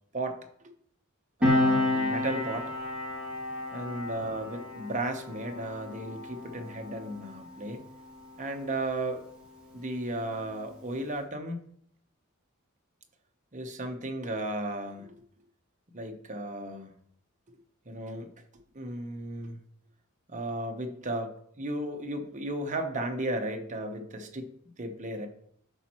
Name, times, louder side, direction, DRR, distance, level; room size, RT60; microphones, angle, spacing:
Piano, 1.4-8.4 8.7-8.9, left 1 dB, 5° right, 2.3 m, -31 dB
voice 1, 1.4-2.7 3.7-7.8 8.4-9.2 9.7-11.7 13.5-15.1 15.9-16.9 17.9-18.3 18.7-19.6 20.3-24.5 24.8-25.3, right 1 dB, 35° right, 4 dB, 0.9 m, -34 dB
11.5 x 4.2 x 3.0 m, 0.65 s
head